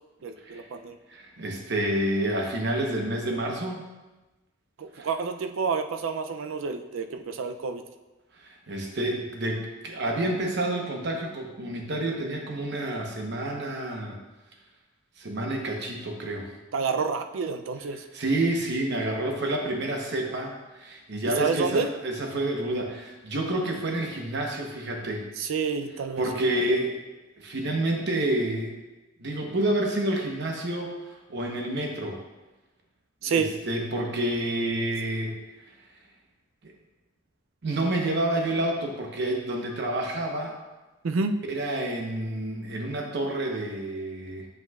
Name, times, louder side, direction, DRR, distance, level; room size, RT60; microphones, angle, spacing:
voice 1, 0.2-1.0 4.8-7.8 16.7-18.0 21.4-21.9 25.4-26.2 33.2-33.5 41.0-41.4, right 5 dB, 85° right, 7 dB, 0.4 m, -28 dB
voice 2, 1.1-3.8 4.9-5.1 8.4-14.2 15.2-16.5 17.9-25.2 26.2-27.0 27.4-28.8 29.2-32.2 33.2-35.3 36.6-36.7 37.6-40.6 41.5-44.5, right 1 dB, 60° right, 1 dB, 1.0 m, -29 dB
7.7 x 5.4 x 2.4 m, 1.1 s
head